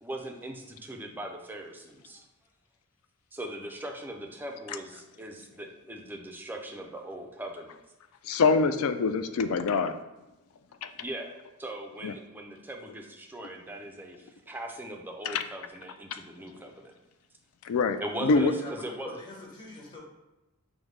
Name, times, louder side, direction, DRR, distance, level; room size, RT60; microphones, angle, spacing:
voice 1, 0.0-2.2 3.3-7.8 11.0-11.3 11.6-16.9 18.0-19.1, right 1 dB, 10° right, 2 dB, 0.4 m, -40 dB
voice 2, 8.2-10.0 10.8-10.9 12.0-12.1 15.3-15.4 17.6-18.5, left 4 dB, 70° left, 10 dB, 0.3 m, -25 dB
voice 3, 18.3-20.0, left 2 dB, 20° left, -4 dB, 1.0 m, -44 dB
5.1 x 2.1 x 3.1 m, 1.0 s
head